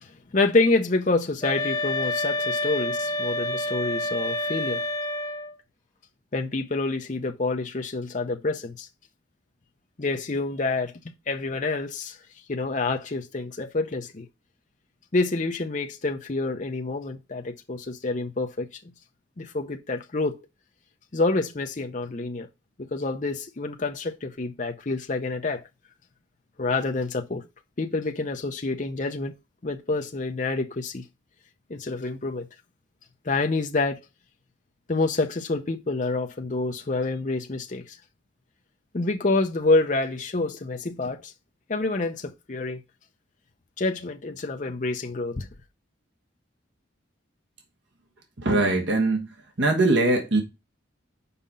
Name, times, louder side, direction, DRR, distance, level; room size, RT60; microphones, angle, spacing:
voice 1, 0.0-4.8 6.3-8.9 10.0-12.2 12.5-14.3 15.1-18.7 19.4-20.4 21.1-22.5 22.9-25.6 26.6-27.5 27.8-29.3 29.6-31.0 31.7-32.5 33.2-34.0 34.9-38.0 38.9-41.3 41.7-42.8 43.8-45.5, left 3 dB, 40° left, 0.6 m, -27 dB
sound 1, 1.4-5.6, left 2 dB, 15° left, 0.9 m, -28 dB
voice 2, 48.4-49.3 49.6-50.4, right 2 dB, 60° right, 1.4 m, -21 dB
5.5 x 5.1 x 5.4 m
head